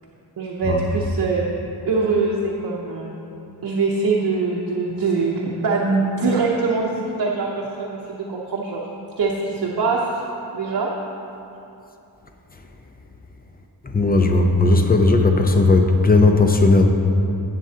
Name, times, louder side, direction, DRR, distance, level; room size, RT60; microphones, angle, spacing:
voice 1, 0.4-1.5 1.8-3.1 3.6-8.8 9.2-10.2 10.5-10.9, right 4 dB, 60° right, -3 dB, 0.8 m, -23 dB
voice 2, 13.8-16.9, left 2 dB, 20° left, 4 dB, 0.6 m, -16 dB
10.5 x 7.7 x 2.8 m, 2.8 s
wide cardioid pair, 95°, 41 cm